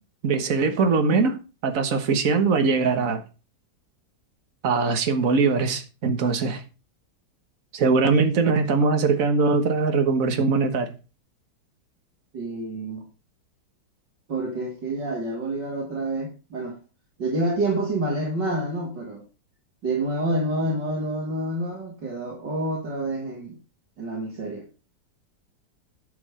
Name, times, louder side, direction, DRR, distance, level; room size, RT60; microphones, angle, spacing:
voice 1, 0.2-1.4 1.6-3.2 4.6-6.6 7.7-10.9, right 4 dB, 50° right, 1.7 m, -21 dB
voice 2, 12.3-13.0 14.3-16.8 17.2-19.2 19.8-23.6 24.0-24.7, right 1 dB, 75° right, 3.1 m, -28 dB
11.0 x 5.7 x 5.0 m
omnidirectional pair, 2.0 m